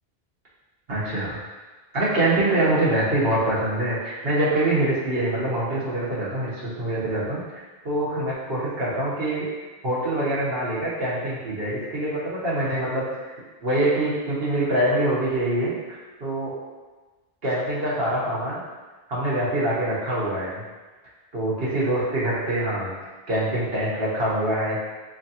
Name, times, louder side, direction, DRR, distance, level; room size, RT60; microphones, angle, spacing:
voice 1, 0.9-1.4 1.9-9.5 9.8-13.3 13.6-15.8 16.2-16.5 17.4-18.6 19.1-20.6 21.3-22.9 23.3-24.8, right 1 dB, 70° right, -8 dB, 1.3 m, -24 dB
3.7 x 3.1 x 2.8 m, 1.3 s
omnidirectional pair, 1.0 m